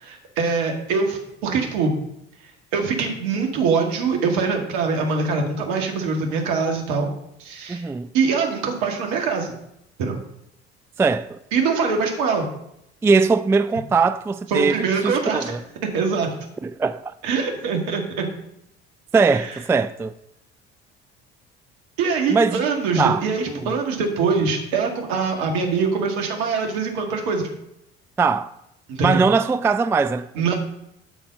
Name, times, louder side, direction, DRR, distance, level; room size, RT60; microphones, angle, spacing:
voice 1, 0.0-2.0 2.7-7.1 7.4-7.8 8.1-9.6 10.0-10.2 11.5-12.4 14.5-15.6 15.9-16.3 17.2-18.3 19.3-19.5 22.0-27.5 28.9-29.2 30.3-30.6, right 5 dB, 70° right, 2.0 m, -23 dB
voice 2, 7.7-8.1 11.0-11.4 13.0-15.6 16.6-17.0 19.1-20.1 22.3-22.6 23.0-23.7 28.2-28.5 29.0-30.5, right 4 dB, 10° right, 0.3 m, -21 dB
12.5 x 4.2 x 5.4 m
hypercardioid pair, 60°, 32 cm